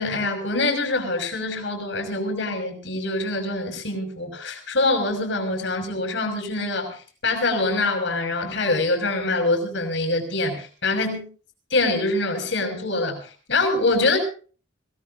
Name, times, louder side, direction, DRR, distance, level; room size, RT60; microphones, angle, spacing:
voice 1, 0.0-11.3 11.7-13.2 13.5-14.2, left 2 dB, 65° left, 4 dB, 6.0 m, -24 dB
25.5 x 18.5 x 2.6 m, 0.40 s
head